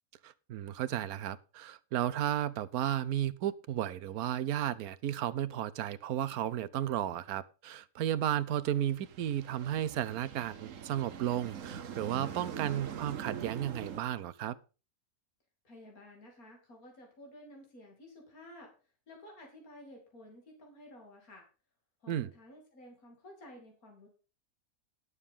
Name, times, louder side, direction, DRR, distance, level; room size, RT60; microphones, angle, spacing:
voice 1, 0.2-14.6 22.1-22.3, right 11 dB, 85° right, 1.2 m, -33 dB
sound 1, 8.7-14.0, right 7 dB, 65° right, 1.3 m, -43 dB
voice 2, 15.6-18.7 19.1-21.5 22.0-24.1, left 1 dB, 75° left, 3.3 m, -53 dB
11.5 x 6.8 x 5.5 m
omnidirectional pair, 1.5 m